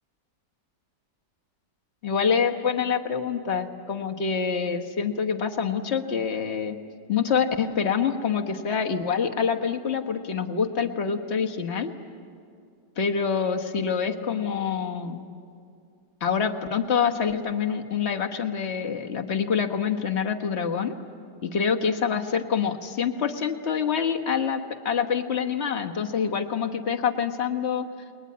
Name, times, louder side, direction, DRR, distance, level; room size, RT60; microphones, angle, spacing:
voice 1, 2.0-6.8 7.1-11.9 13.0-15.2 16.2-21.0 21.5-27.9, left 6 dB, 40° left, 5 dB, 1.5 m, -26 dB
29.0 x 21.5 x 9.7 m, 2.4 s
omnidirectional pair, 1.9 m